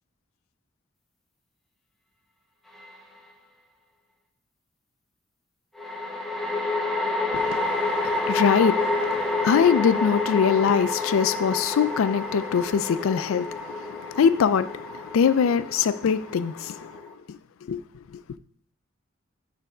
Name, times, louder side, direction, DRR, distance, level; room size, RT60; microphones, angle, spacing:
sound 1, 2.8-2.9 5.8-17.1, left 2 dB, ahead, 0.7 m, -29 dB
voice 1, 7.3-16.9 17.3-17.4 17.7-17.8 18.1-18.2, left 7 dB, 80° left, 0.4 m, -23 dB
6.9 x 3.4 x 4.9 m
head